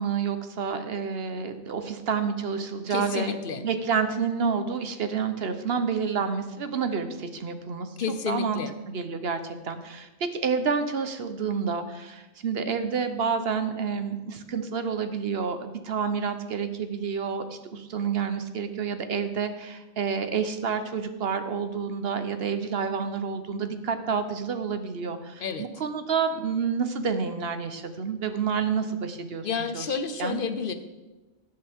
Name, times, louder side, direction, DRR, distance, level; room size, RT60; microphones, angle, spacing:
voice 1, 0.0-8.6 8.9-29.5 29.7-30.4, right 6 dB, 60° right, 9 dB, 1.0 m, -29 dB
voice 2, 2.9-3.6 8.0-8.7 25.4-25.7 29.4-30.7, left 6 dB, 55° left, 9 dB, 0.9 m, -30 dB
17.5 x 6.9 x 3.5 m, 1.1 s
omnidirectional pair, 1.2 m